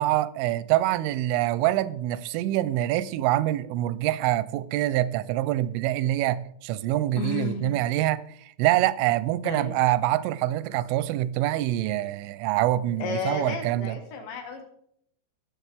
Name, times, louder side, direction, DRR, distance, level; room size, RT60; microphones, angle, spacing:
voice 1, 0.0-8.2 8.6-14.0, right 14 dB, 85° right, 3.1 m, -25 dB
voice 2, 7.2-7.8 9.4-9.8 13.0-14.6, left 5 dB, 70° left, 3.7 m, -32 dB
20.5 x 7.8 x 3.5 m
omnidirectional pair, 5.6 m